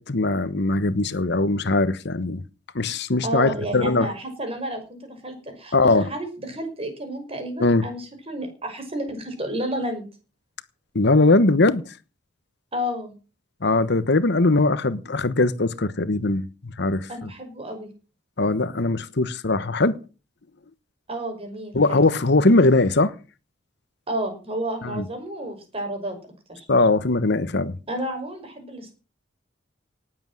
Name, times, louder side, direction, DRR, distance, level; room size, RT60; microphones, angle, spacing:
voice 1, 0.0-2.4 2.7-4.1 5.7-6.1 7.6-7.9 10.9-11.8 13.6-16.4 16.8-17.1 18.4-20.0 21.7-23.1 24.8-25.0 26.7-27.8, left 2 dB, 60° left, 1.1 m, -20 dB
voice 2, 3.2-10.0 12.7-13.1 17.1-17.9 21.1-22.0 24.1-26.2 26.5-26.7 27.9-29.0, right 1 dB, 30° right, 5.7 m, -31 dB
19.0 x 8.0 x 7.6 m
head